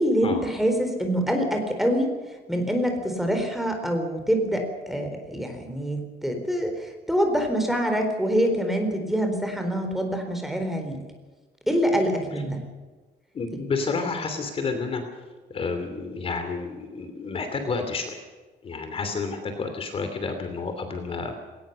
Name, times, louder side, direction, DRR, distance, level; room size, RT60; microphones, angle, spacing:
voice 1, 0.0-2.1 2.5-11.0 11.7-12.6, equal, ahead, 4 dB, 4.0 m, -25 dB
voice 2, 13.3-15.0 15.5-18.2 18.6-21.4, left 4 dB, 35° left, 6 dB, 2.9 m, -30 dB
20.0 x 19.0 x 6.8 m, 1.3 s
cardioid pair, 160°, 17 cm